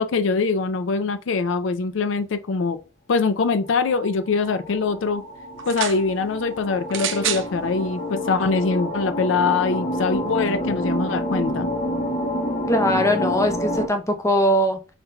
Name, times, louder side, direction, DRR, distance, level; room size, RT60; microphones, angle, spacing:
voice 1, 0.0-2.8 3.1-5.2 5.7-11.7, left 4 dB, 70° left, 0.4 m, -23 dB
sound 1, 3.6-13.9, equal, 40° left, 1.1 m, -28 dB
sound 2, 5.6-6.0 6.9-7.5 8.4-8.5, right 9 dB, 70° right, 0.6 m, -27 dB
voice 2, 12.7-14.8, equal, 15° left, 0.7 m, -21 dB
5.5 x 3.7 x 2.2 m
head